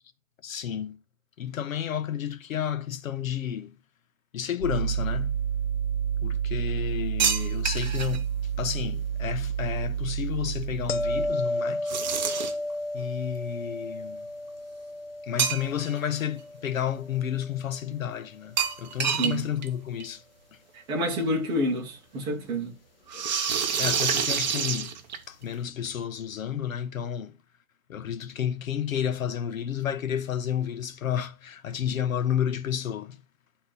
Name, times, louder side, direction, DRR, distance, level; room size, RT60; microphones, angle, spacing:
voice 1, 0.4-1.0 1.4-3.7 4.3-5.3 6.2-8.3 8.6-11.9 12.9-14.2 15.3-20.2 23.8-24.9 25.3-27.3 27.9-33.2, left 9 dB, 70° left, 0.9 m, -31 dB
sound 1, 4.6-11.3, right 8 dB, 10° left, 1.2 m, -29 dB
sound 2, 7.2-8.2 11.9-12.7 15.4-16.0 16.3-16.4 18.6-19.4 19.6-19.7 20.0-20.1 21.3-21.4 23.1-25.4, right 7 dB, 30° right, 0.8 m, -27 dB
sound 3, 10.9-17.9 23.1-23.3, left 2 dB, 45° left, 0.7 m, -33 dB
voice 2, 19.1-19.4 20.7-22.7, equal, 10° right, 1.0 m, -28 dB
11.0 x 3.9 x 4.1 m
hypercardioid pair, 170°, 42 cm